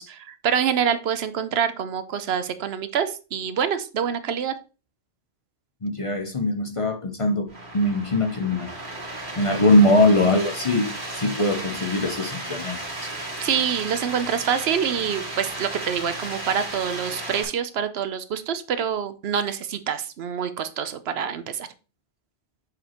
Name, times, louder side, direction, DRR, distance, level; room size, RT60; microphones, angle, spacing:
voice 1, 0.0-4.5 13.4-21.7, right 8 dB, 70° right, 11 dB, 0.9 m, -26 dB
voice 2, 5.8-7.5 7.7-8.7 9.4-12.8, left 1 dB, 35° left, 5 dB, 0.7 m, -21 dB
sound 1, 7.5-17.4, right 2 dB, 50° right, 2.4 m, -34 dB
7.2 x 5.2 x 2.9 m, 0.33 s
omnidirectional pair, 1.1 m